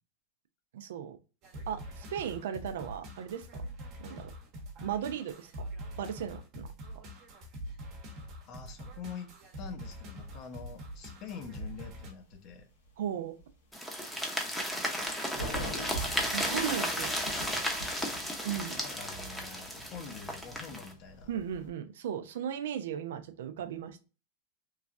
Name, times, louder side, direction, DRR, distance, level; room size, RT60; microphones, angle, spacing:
voice 1, 0.7-1.2 1.7-3.7 4.0-4.3 4.8-5.7 6.0-6.7 13.0-13.4 16.3-17.1 18.4-18.8 21.3-24.0, right 9 dB, 75° right, 0.4 m, -36 dB
sound 1, 1.4-12.1, equal, 45° right, 0.9 m, -44 dB
voice 2, 8.4-12.7 15.3-16.0 18.7-21.3, left 6 dB, 45° left, 0.6 m, -45 dB
sound 2, 10.2-11.9 12.1-12.6 12.8-12.9 13.4-13.5 14.9-21.7, right 1 dB, 85° left, 1.2 m, -43 dB
sound 3, 13.7-20.9, equal, 5° left, 0.7 m, -34 dB
3.1 x 2.3 x 2.4 m
hypercardioid pair, 115°, 0 cm